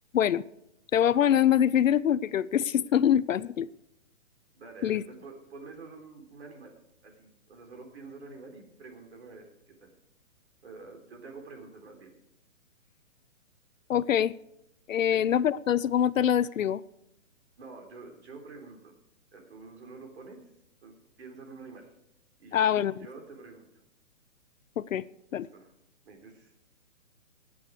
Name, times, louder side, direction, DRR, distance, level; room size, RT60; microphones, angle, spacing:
voice 1, 0.1-0.4 0.9-3.7 4.8-5.0 13.9-14.3 14.9-16.8 22.5-22.9 24.8-25.0 25.3-25.5, left 10 dB, 75° left, 18 dB, 0.6 m, -24 dB
voice 2, 4.5-6.7 7.0-9.9 10.6-12.1 15.1-15.3 17.6-18.9 19.3-20.4 20.8-21.9 22.4-23.7 25.3-25.7 26.1-26.5, right 4 dB, 50° right, 3 dB, 3.9 m, -47 dB
19.5 x 8.7 x 4.8 m, 0.83 s
hypercardioid pair, 170°, 40 cm